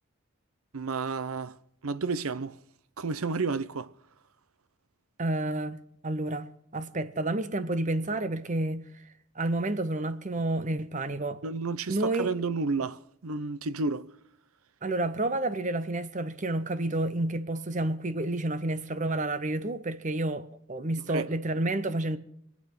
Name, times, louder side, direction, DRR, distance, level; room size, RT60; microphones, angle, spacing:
voice 1, 0.7-1.6 1.8-2.5 3.0-3.9 11.4-14.1 21.1-21.3, right 4 dB, 85° right, 0.7 m, -31 dB
voice 2, 5.2-8.8 9.4-11.4 11.9-12.3 14.8-22.2, right 2 dB, 35° right, 0.8 m, -30 dB
25.0 x 8.6 x 5.9 m
head